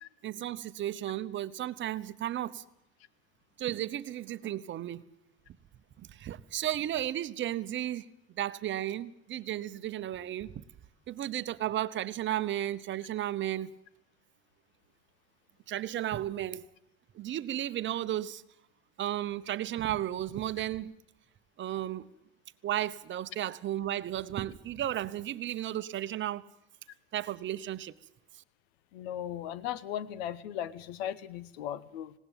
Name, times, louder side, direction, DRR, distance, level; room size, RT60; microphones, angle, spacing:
voice 1, 0.2-2.6 3.6-5.0 6.0-8.1 8.3-10.6 11.1-13.7 15.7-16.7 17.1-18.4 19.0-20.9 21.6-22.1 22.6-26.5 27.1-27.9, right 12 dB, 40° right, 0.9 m, -34 dB
voice 2, 28.9-32.1, left 10 dB, 85° left, 1.2 m, -37 dB
19.0 x 17.5 x 9.1 m
supercardioid pair, 110°, 31 cm